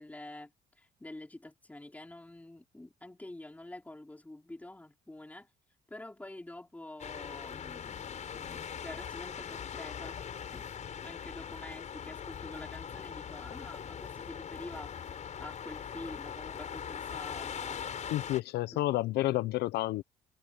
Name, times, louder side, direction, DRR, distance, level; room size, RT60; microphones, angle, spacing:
voice 1, 0.0-5.5 5.9-10.2 10.5-17.9 18.7-18.8, left 1 dB, 10° left, 4.0 m, -48 dB
sound 1, 7.0-18.4, left 7 dB, 45° left, 5.6 m, -41 dB
voice 2, 18.1-20.0, left 16 dB, 80° left, 0.8 m, -30 dB
cardioid pair, 110°, 17 cm